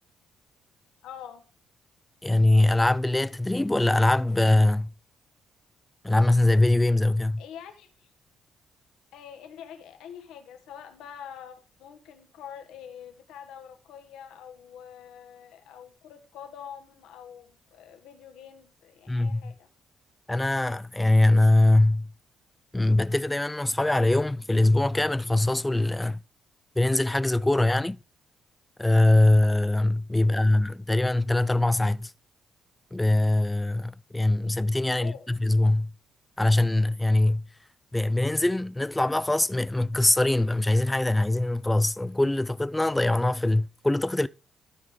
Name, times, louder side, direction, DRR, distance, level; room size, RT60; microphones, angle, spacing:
voice 1, 1.0-1.4 7.4-8.1 9.1-19.7 30.3-30.7 35.0-35.3, left 8 dB, 90° left, 1.4 m, -45 dB
voice 2, 2.2-4.9 6.0-7.4 19.1-19.5 20.3-22.1 22.7-26.2 26.8-28.0 28.8-32.1 32.9-35.9 36.4-37.4 37.9-44.3, left 2 dB, 10° left, 0.3 m, -22 dB
12.5 x 4.9 x 3.8 m
cardioid pair, 90°, 0 cm